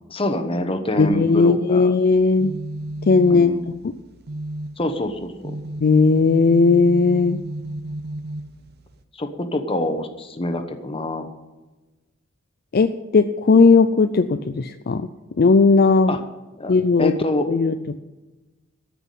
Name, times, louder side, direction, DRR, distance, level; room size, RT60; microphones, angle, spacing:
voice 1, 0.1-1.9 3.3-3.7 4.8-5.6 9.2-11.3 16.1-16.2 16.6-16.7 17.0-17.5, left 1 dB, 30° left, 7 dB, 1.1 m, -26 dB
voice 2, 1.0-2.5 3.1-3.9 5.8-7.4 12.7-15.1 15.4-16.2 16.7-17.1 17.5-17.7, left 4 dB, 50° left, 9 dB, 0.4 m, -17 dB
sound 1, 2.1-9.0, right 1 dB, 55° right, 0.9 m, -33 dB
13.5 x 6.1 x 9.2 m, 1.1 s
head